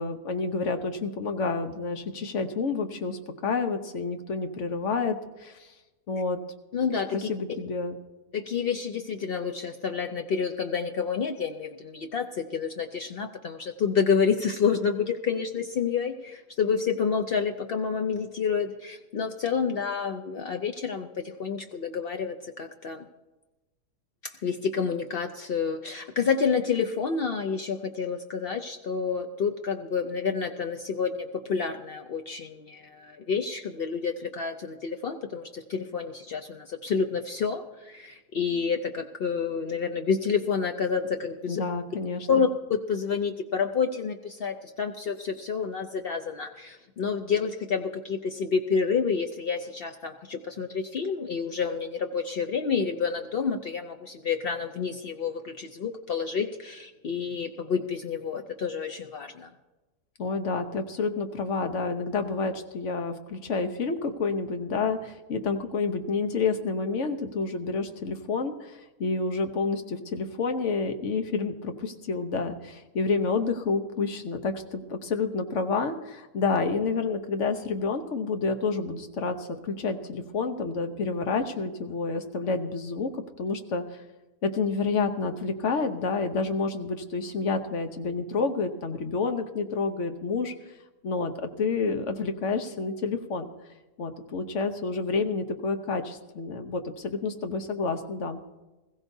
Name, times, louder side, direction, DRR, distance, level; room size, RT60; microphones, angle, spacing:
voice 1, 0.0-5.7 6.1-6.4 7.1-7.9 41.5-42.4 60.2-83.1 83.4-83.8 84.4-90.5 91.0-93.5 94.0-98.4, left 4 dB, 50° left, 7 dB, 1.1 m, -29 dB
voice 2, 6.7-7.3 8.3-23.1 24.2-41.6 42.3-59.5, left 6 dB, 90° left, 5 dB, 0.5 m, -29 dB
20.5 x 15.5 x 2.7 m, 1.1 s
omnidirectional pair, 1.8 m